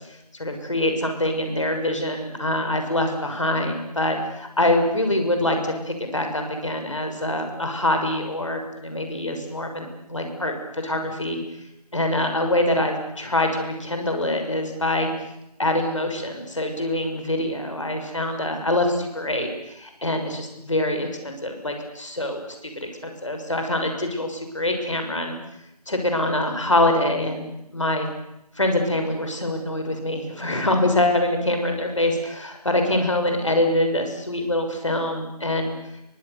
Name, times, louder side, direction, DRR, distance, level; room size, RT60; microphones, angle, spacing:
voice 1, 0.1-11.4 11.9-15.1 15.6-25.4 25.9-28.1 28.5-35.8, left 1 dB, 50° left, 5 dB, 6.3 m, -24 dB
29.5 x 24.0 x 7.0 m, 0.85 s
figure-of-eight pair, 170°, 20 cm